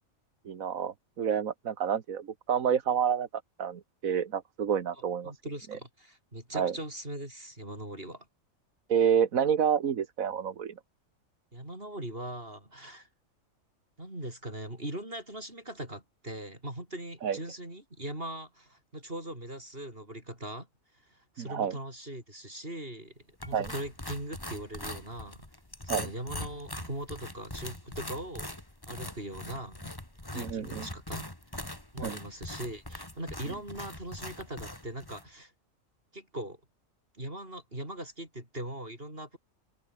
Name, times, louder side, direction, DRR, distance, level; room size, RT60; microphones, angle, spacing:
voice 1, 0.5-3.3 3.6-5.3 6.5-6.7 8.9-10.7 17.2-17.4 21.4-21.7 23.5-23.7 25.9-26.1 30.4-30.9 32.0-32.2, right 7 dB, 80° right, 1.7 m, -28 dB
voice 2, 5.2-8.3 11.5-13.1 14.0-20.7 21.1-25.5 25.8-28.5 28.9-29.9 30.3-31.2 31.9-35.5 36.1-36.6 37.2-39.4, right 1 dB, 45° right, 7.6 m, -40 dB
sound 1, 23.4-35.3, left 1 dB, 15° left, 3.1 m, -42 dB
omnidirectional pair, 1.4 m